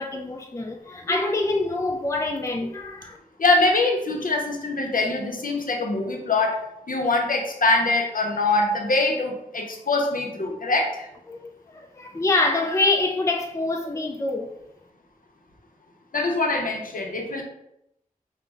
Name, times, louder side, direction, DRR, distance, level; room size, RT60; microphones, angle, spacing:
voice 1, 0.0-3.2 11.3-14.5, left 2 dB, 20° left, 0.4 m, -25 dB
voice 2, 3.4-11.1 16.1-17.4, left 2 dB, 70° left, 0.7 m, -23 dB
5.0 x 2.1 x 3.6 m
wide cardioid pair, 65°, 15 cm